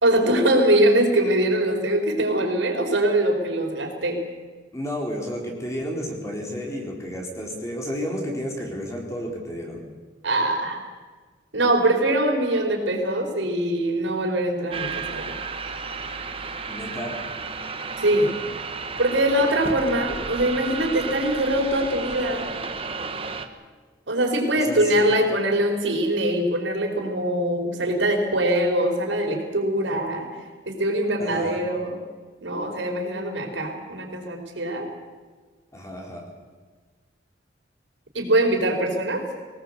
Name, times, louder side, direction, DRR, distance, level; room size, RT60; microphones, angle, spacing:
voice 1, 0.0-4.2 10.2-10.8 11.5-15.3 18.0-18.3 19.0-22.5 24.1-30.3 30.6-32.0 32.4-34.9 38.1-39.3, right 1 dB, 85° right, 2 dB, 5.0 m, -23 dB
voice 2, 4.7-9.8 16.7-17.2 24.5-25.2 31.2-31.6 35.7-36.3, equal, 15° left, 0 dB, 3.9 m, -32 dB
sound 1, 14.7-23.5, right 4 dB, 30° right, 1.4 m, -32 dB
24.0 x 19.0 x 8.2 m, 1.4 s
head